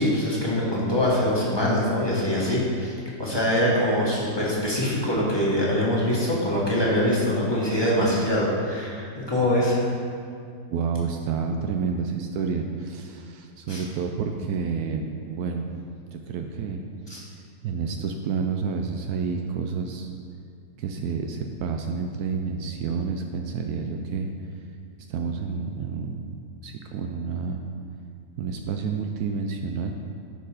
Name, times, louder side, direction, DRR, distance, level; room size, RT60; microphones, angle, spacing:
voice 1, 0.0-9.8 13.7-13.8 17.1-17.2, left 1 dB, 15° left, -6 dB, 1.7 m, -23 dB
voice 2, 10.7-15.8 16.1-16.8 17.1-17.3 17.6-20.1 20.8-24.3 25.1-27.6 28.4-29.9, right 5 dB, 80° right, 3 dB, 1.1 m, -29 dB
11.5 x 4.5 x 4.9 m, 2.3 s
omnidirectional pair, 1.6 m